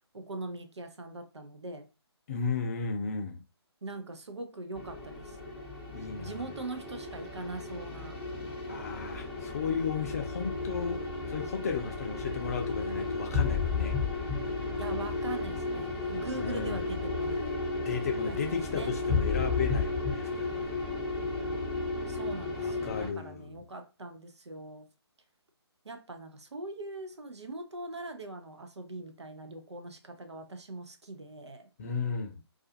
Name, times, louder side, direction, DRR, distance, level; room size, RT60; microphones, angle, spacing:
voice 1, 0.1-1.9 3.8-5.4 6.2-8.2 14.7-17.6 18.3-18.9 21.5-21.6 22.1-24.9 25.8-31.7, right 2 dB, 80° right, 0.6 m, -42 dB
voice 2, 2.3-3.4 5.9-6.4 8.7-11.0 11.3-13.9 16.4-16.8 17.9-20.7 22.6-23.6 31.8-32.4, left 5 dB, 35° left, 0.5 m, -34 dB
sound 1, 4.7-23.1, left 3 dB, 10° right, 0.9 m, -33 dB
2.4 x 2.4 x 2.6 m
figure-of-eight pair, 150°, 14 cm